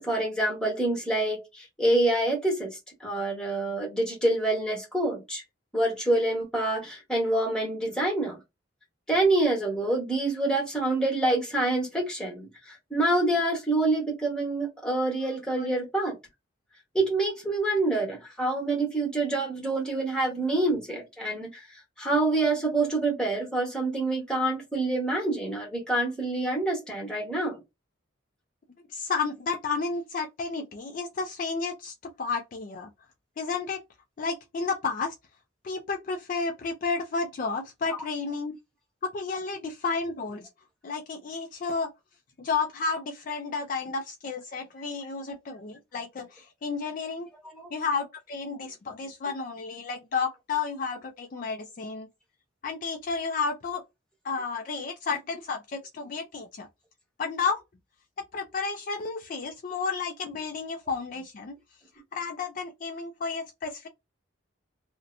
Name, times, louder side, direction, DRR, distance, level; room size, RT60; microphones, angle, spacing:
voice 1, 0.0-5.4 5.7-8.4 9.1-16.1 16.9-21.7 22.0-27.6 47.5-47.7, right 2 dB, 5° left, 1.2 m, -27 dB
voice 2, 28.9-32.9 33.4-33.8 34.2-35.2 35.6-38.6 39.0-40.5 40.8-41.9 42.4-47.3 47.7-52.1 52.6-53.8 54.2-56.7 57.2-57.6 58.3-61.6 62.1-63.9, left 4 dB, 40° left, 0.3 m, -32 dB
2.7 x 2.1 x 2.5 m
head